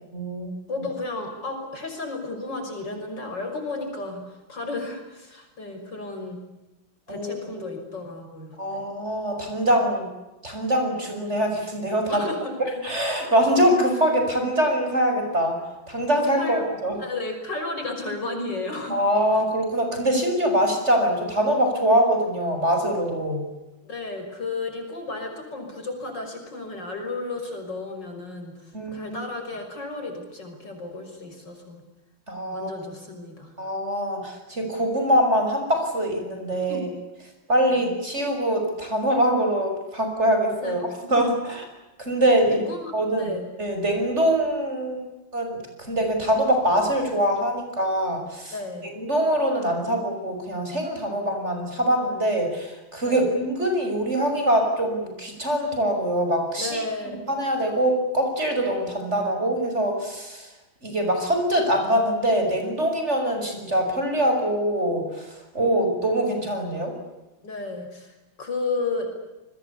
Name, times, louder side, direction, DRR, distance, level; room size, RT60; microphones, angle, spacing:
voice 1, 0.1-0.5 7.1-7.7 8.6-10.1 10.4-12.2 12.8-15.6 15.9-17.0 18.9-23.4 28.7-29.2 32.3-32.7 33.6-36.9 37.5-41.7 42.0-42.6 42.9-43.3 43.6-45.0 45.3-45.5 45.8-48.5 48.9-56.8 57.3-60.5 60.8-66.9, right 1 dB, 35° right, 4 dB, 6.6 m, -23 dB
voice 2, 0.7-6.4 7.1-8.9 12.1-12.5 16.4-16.6 17.0-19.0 23.8-31.8 32.5-33.5 36.7-36.8 37.6-37.9 40.6-40.7 41.0-41.2 42.7-43.4 48.5-48.9 53.0-53.3 56.6-57.3 67.4-69.1, left 3 dB, 60° left, 4 dB, 6.6 m, -33 dB
30.0 x 22.0 x 8.5 m, 1.0 s
omnidirectional pair, 2.2 m